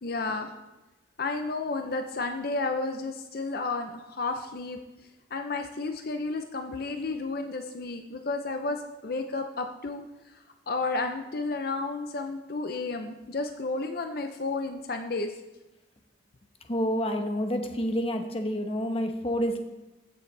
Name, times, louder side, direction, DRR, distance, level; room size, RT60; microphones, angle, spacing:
voice 1, 0.0-0.5 1.2-4.8 5.3-10.0 10.7-15.3, left 3 dB, 50° left, 6 dB, 0.6 m, -32 dB
voice 2, 16.7-19.6, equal, 30° left, 4 dB, 1.0 m, -28 dB
15.0 x 6.9 x 3.3 m, 1.1 s
head